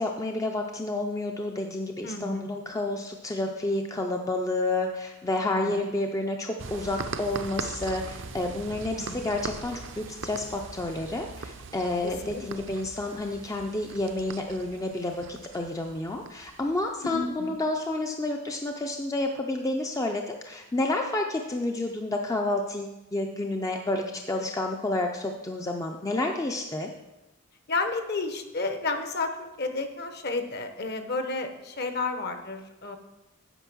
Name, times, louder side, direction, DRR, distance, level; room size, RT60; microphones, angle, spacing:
voice 1, 0.0-26.9, left 2 dB, 15° left, 2 dB, 0.4 m, -30 dB
voice 2, 2.0-2.8 5.4-5.8 9.0-9.1 12.0-12.4 17.1-17.5 27.7-33.0, left 3 dB, 50° left, 7 dB, 0.9 m, -32 dB
sound 1, 6.6-17.8, right 4 dB, 55° right, 0.6 m, -41 dB
9.0 x 5.1 x 6.1 m, 1.0 s
head